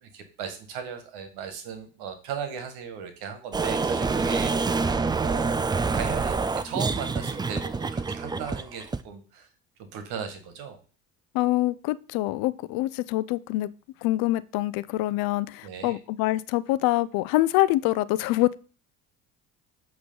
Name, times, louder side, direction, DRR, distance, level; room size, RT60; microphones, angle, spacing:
voice 1, 0.0-6.3 6.6-9.5 9.9-10.8 15.6-16.0, right 7 dB, 70° right, 1.5 m, -37 dB
sound 1, 3.5-9.0, right 4 dB, 10° right, 0.4 m, -26 dB
voice 2, 11.3-13.7 14.0-18.5, left 17 dB, 60° left, 0.5 m, -25 dB
8.1 x 3.2 x 5.3 m
hypercardioid pair, 70°, 40 cm